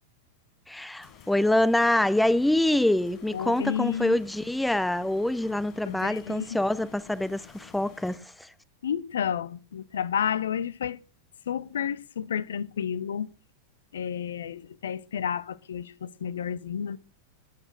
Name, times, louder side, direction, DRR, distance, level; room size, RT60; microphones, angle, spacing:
voice 1, 0.7-8.5, left 1 dB, 5° left, 0.7 m, -25 dB
sound 1, 1.0-8.2, left 8 dB, 35° left, 5.0 m, -51 dB
voice 2, 3.3-4.1 5.9-6.5 8.8-11.0 11.5-13.3 13.9-17.0, left 8 dB, 65° left, 0.9 m, -31 dB
19.0 x 8.8 x 6.1 m
figure-of-eight pair, 90°, 0 cm